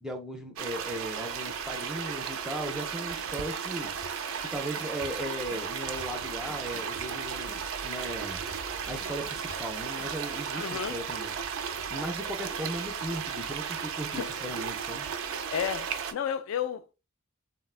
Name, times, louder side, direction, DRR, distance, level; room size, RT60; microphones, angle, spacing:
voice 1, 0.0-3.9 4.4-8.4 8.9-15.1, right 1 dB, 5° right, 0.4 m, -37 dB
sound 1, 0.6-16.1, right 7 dB, 80° right, 0.4 m, -35 dB
sound 2, 4.0-7.8 8.5-10.5, left 3 dB, 50° left, 0.7 m, -50 dB
voice 2, 10.5-11.0 14.2-14.3 15.5-16.9, left 8 dB, 70° left, 0.3 m, -32 dB
3.5 x 2.2 x 2.3 m
head